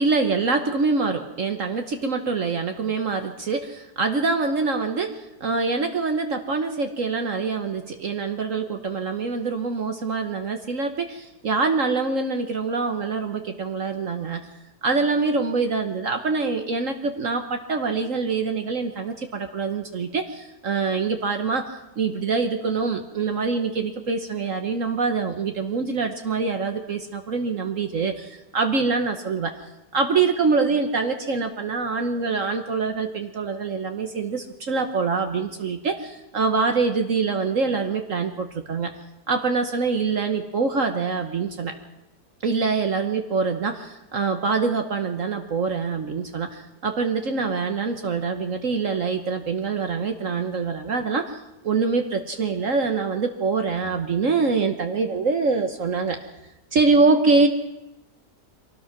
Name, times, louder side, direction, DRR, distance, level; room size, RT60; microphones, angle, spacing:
voice 1, 0.0-14.5 14.8-29.5 29.9-38.9 39.3-41.7 42.4-56.2 56.7-57.5, right 4 dB, 60° right, 5 dB, 1.5 m, -25 dB
24.5 x 18.0 x 6.0 m, 0.93 s
omnidirectional pair, 1.6 m